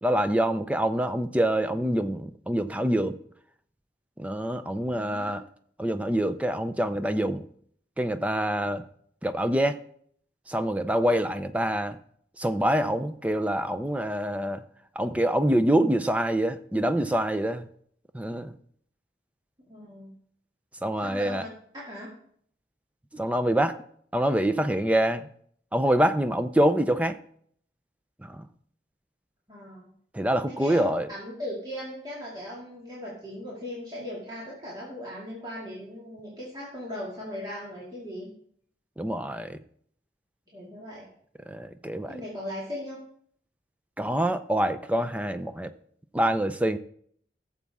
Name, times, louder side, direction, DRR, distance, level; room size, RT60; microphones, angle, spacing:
voice 1, 0.0-3.2 4.2-5.4 5.8-7.5 8.0-8.9 9.2-9.8 10.5-12.0 12.4-14.6 15.0-17.7 18.1-18.5 20.8-21.4 23.1-23.8 24.1-25.3 25.7-27.2 28.2-28.5 30.1-31.1 39.0-39.6 41.5-42.2 44.0-45.7 46.1-46.8, right 1 dB, 10° right, 0.5 m, -25 dB
voice 2, 4.8-5.4 19.7-20.1 21.0-21.5 21.7-22.1 29.5-29.9 30.5-38.3 40.5-41.1 42.1-43.0, left 1 dB, 25° right, 2.4 m, -38 dB
16.5 x 7.2 x 3.6 m
head